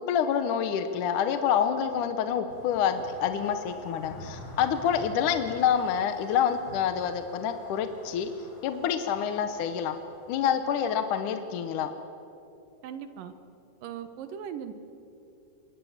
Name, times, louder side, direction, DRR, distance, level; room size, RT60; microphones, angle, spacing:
voice 1, 0.0-8.3 8.6-9.9 10.3-11.9, left 8 dB, 70° left, 8 dB, 2.2 m, -27 dB
sound 1, 2.5-11.3, equal, 35° left, 6.4 m, -48 dB
voice 2, 12.8-13.3 13.8-14.7, right 8 dB, 70° right, 10 dB, 2.8 m, -38 dB
27.5 x 22.5 x 7.3 m, 2.9 s
omnidirectional pair, 4.2 m